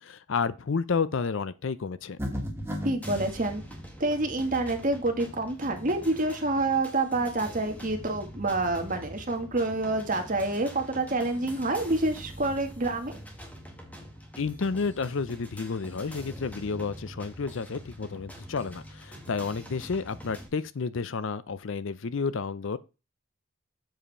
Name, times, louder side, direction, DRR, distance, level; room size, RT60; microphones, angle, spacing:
voice 1, 0.0-2.2 14.4-22.8, left 5 dB, 55° left, 0.5 m, -31 dB
sound 1, 2.2-3.3, equal, 10° right, 1.5 m, -33 dB
voice 2, 2.8-3.6 4.0-13.1, right 2 dB, 35° right, 1.5 m, -27 dB
sound 2, 3.0-20.5, equal, 5° left, 1.7 m, -44 dB
7.6 x 4.9 x 5.5 m
head